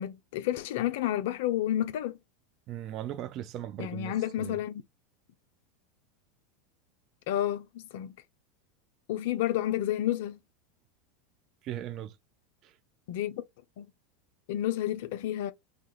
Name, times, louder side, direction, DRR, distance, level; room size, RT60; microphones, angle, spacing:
voice 1, 0.0-2.1 3.8-4.8 7.3-8.1 9.1-10.4 13.1-13.4 13.8-13.9 14.5-15.5, left 12 dB, 60° left, 0.4 m, -30 dB
voice 2, 2.7-4.6 11.6-12.2 12.6-12.7, right 12 dB, 45° right, 0.3 m, -38 dB
2.2 x 2.0 x 2.9 m
figure-of-eight pair, 85°, 0 cm